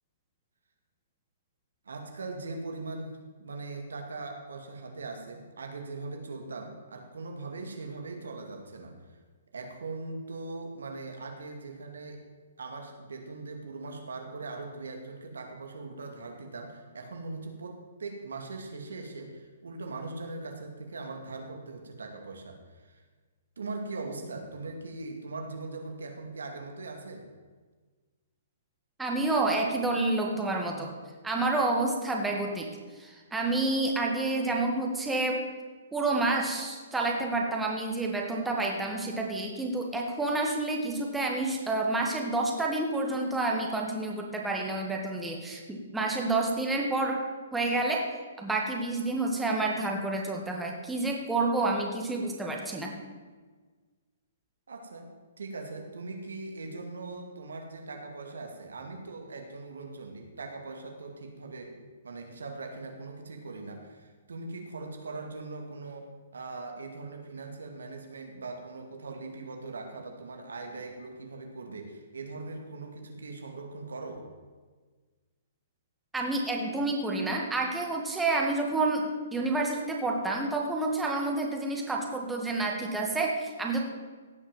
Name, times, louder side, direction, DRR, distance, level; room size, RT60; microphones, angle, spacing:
voice 1, 1.8-3.1 3.4-9.2 9.5-12.3 12.6-23.0 23.6-27.3 54.7-55.1 55.4-61.8 62.0-74.3, right 3 dB, 85° right, 3 dB, 2.4 m, -40 dB
voice 2, 29.0-30.9 31.2-32.7 33.0-35.4 35.9-47.2 47.5-48.1 48.4-52.9 76.1-83.8, right 2 dB, 5° right, 0 dB, 1.9 m, -29 dB
16.5 x 5.9 x 7.5 m, 1.4 s
hypercardioid pair, 145°, 0 cm